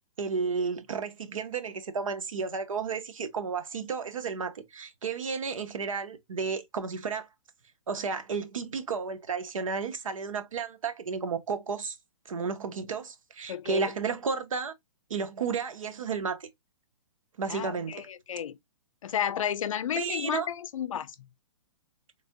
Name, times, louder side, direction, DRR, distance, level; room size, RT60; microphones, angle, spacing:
voice 1, 0.2-7.3 7.9-12.0 12.3-14.7 15.1-16.5 17.4-18.1 20.0-20.5, right 5 dB, 90° right, 0.8 m, -32 dB
voice 2, 13.5-13.9 17.5-18.6 19.0-21.1, left 9 dB, 80° left, 0.5 m, -32 dB
3.4 x 2.6 x 2.3 m
hypercardioid pair, 150°, 17 cm